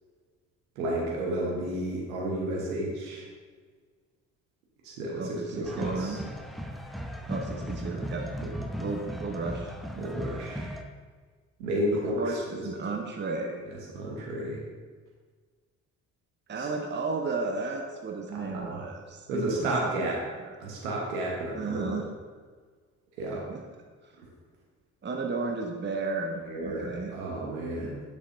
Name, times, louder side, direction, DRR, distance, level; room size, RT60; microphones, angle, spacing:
voice 1, 0.8-3.3 4.8-6.2 8.4-8.5 10.0-10.7 11.6-12.6 13.9-14.6 16.6-16.7 18.4-18.8 19.3-20.2 20.6-22.0 23.2-23.5 26.4-28.0, right 1 dB, 80° right, -3 dB, 1.2 m, -32 dB
voice 2, 5.2-6.2 7.3-8.3 8.8-10.1 11.9-13.7 16.5-19.9 20.4-20.5 21.6-22.1 23.5-23.6 24.0-24.1 25.0-27.1, right 3 dB, 25° right, 2 dB, 0.8 m, -34 dB
sound 1, 5.6-10.8, equal, ahead, 0.6 m, -37 dB
8.1 x 6.3 x 2.6 m, 1.5 s
hypercardioid pair, 50°, 41 cm